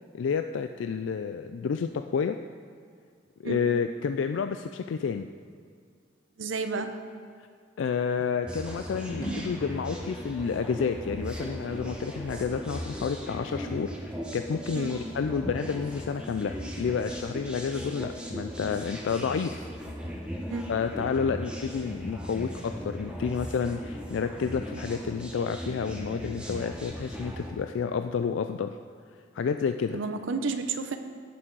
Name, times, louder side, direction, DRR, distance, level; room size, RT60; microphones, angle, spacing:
voice 1, 0.1-2.4 3.4-5.3 7.8-19.6 20.7-28.8 29.3-30.0, left 6 dB, 80° left, 8 dB, 0.3 m, -30 dB
voice 2, 6.4-6.9 14.7-15.0 20.5-20.7 29.9-31.0, right 4 dB, 90° right, 8 dB, 0.7 m, -31 dB
sound 1, 8.4-27.5, equal, 5° right, 1.0 m, -38 dB
sound 2, 8.6-13.7, equal, 20° left, 2.6 m, -43 dB
16.5 x 6.1 x 4.7 m, 2.2 s
head